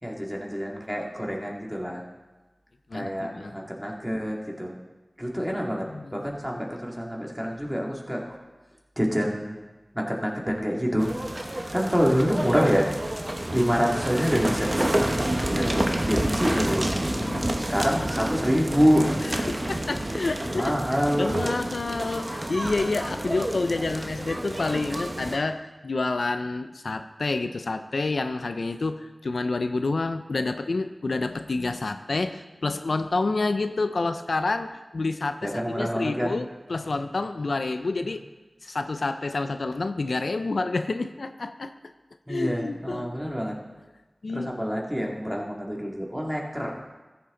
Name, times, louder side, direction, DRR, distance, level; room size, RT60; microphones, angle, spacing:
voice 1, 0.0-2.0 2.9-4.7 5.2-8.4 9.0-9.6 9.9-11.1 11.7-12.9 13.5-14.9 15.2-16.9 17.7-19.1 20.5-21.3 35.4-36.4 42.3-43.6 44.3-46.8, equal, 5° right, -2 dB, 2.2 m, -26 dB
voice 2, 2.9-3.6 5.9-6.1 16.3-16.6 17.1-17.6 19.2-20.7 21.2-38.2 38.6-41.7 42.3-43.1 44.2-44.6, left 3 dB, 85° left, 9 dB, 0.4 m, -29 dB
sound 1, 11.0-25.4, right 1 dB, 35° right, 1.1 m, -29 dB
14.5 x 7.1 x 3.8 m, 1.2 s
wide cardioid pair, 40°, 0 cm